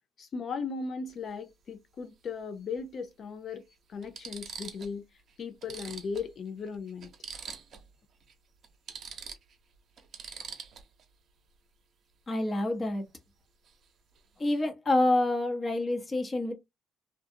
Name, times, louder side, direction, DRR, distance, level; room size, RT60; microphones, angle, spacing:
voice 1, 0.2-5.0 5.4-7.1, left 5 dB, 55° left, 0.4 m, -37 dB
sound 1, 1.1-1.3 2.8-2.9 3.5-3.6 4.0-5.0 5.3-5.4 5.6-7.9 8.2-8.3 8.6-11.0 13.6-13.9 14.1-14.6, right 6 dB, 55° right, 0.7 m, -44 dB
voice 2, 12.3-13.0 14.4-16.5, left 2 dB, 30° left, 0.8 m, -27 dB
2.4 x 2.2 x 2.6 m
supercardioid pair, 80°, 0 cm